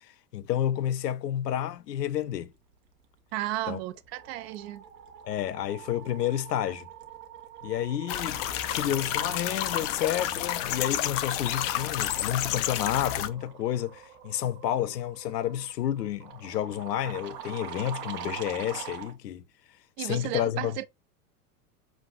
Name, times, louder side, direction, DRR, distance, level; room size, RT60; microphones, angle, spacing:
voice 1, 0.0-2.5 3.7-3.8 5.2-6.9 7.6-8.4 8.7-19.4 20.0-20.9, left 11 dB, 85° left, 0.5 m, -30 dB
voice 2, 3.3-4.8 20.0-20.8, right 15 dB, 45° right, 0.5 m, -34 dB
sound 1, 3.3-3.6 3.9-19.1, right 9 dB, 70° right, 1.0 m, -45 dB
sound 2, 8.1-13.3, left 11 dB, 35° left, 0.5 m, -30 dB
6.0 x 2.5 x 2.3 m
hypercardioid pair, 90°, 47 cm